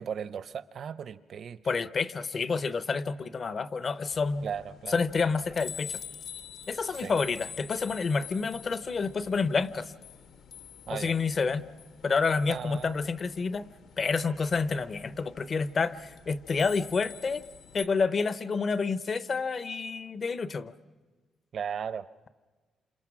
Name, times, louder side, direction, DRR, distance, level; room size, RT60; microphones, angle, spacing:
voice 1, 0.0-1.6 4.4-4.9 6.9-7.2 10.9-11.1 12.4-13.0 21.5-22.1, right 7 dB, 50° right, 15 dB, 0.7 m, -36 dB
voice 2, 1.6-4.5 4.9-6.0 6.7-9.9 10.9-11.6 12.0-13.7 14.0-17.4 17.7-20.7, left 4 dB, 35° left, 14 dB, 0.7 m, -29 dB
sound 1, 4.1-17.8, left 8 dB, 65° left, 1.3 m, -47 dB
28.5 x 27.5 x 6.1 m, 1.3 s
cardioid pair, 165°, 0 cm